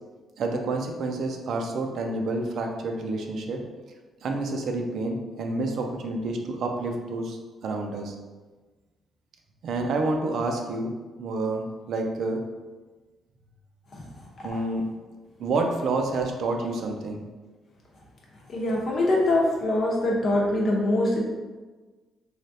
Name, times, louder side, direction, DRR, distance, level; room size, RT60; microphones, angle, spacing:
voice 1, 0.4-3.6 4.2-8.2 9.6-10.9 11.2-12.4 14.4-14.9 15.4-17.2, right 2 dB, 65° right, 3 dB, 0.4 m, -29 dB
voice 2, 18.5-21.2, left 1 dB, 55° left, -3 dB, 0.8 m, -23 dB
3.2 x 2.4 x 2.7 m, 1.3 s
cardioid pair, 90°, 0 cm